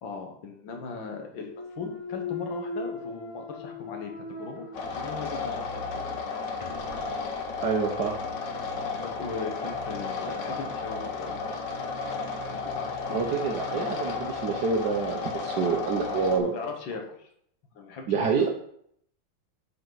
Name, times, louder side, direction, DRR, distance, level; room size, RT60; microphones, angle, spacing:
voice 1, 0.0-4.6 4.9-6.2 9.0-11.4 12.5-13.3 16.4-17.3 17.7-18.5, left 4 dB, 85° left, 3 dB, 2.1 m, -39 dB
Thump thud, 1.4-5.5 5.9-10.6, left 3 dB, 25° left, 0.8 m, -41 dB
sound 1, 4.7-16.4, left 4 dB, 70° left, 1.7 m, -33 dB
voice 2, 7.6-8.1 13.1-16.5 18.1-18.5, right 5 dB, 65° right, 1 dB, 1.5 m, -27 dB
9.1 x 6.4 x 4.1 m, 0.68 s
omnidirectional pair, 2.0 m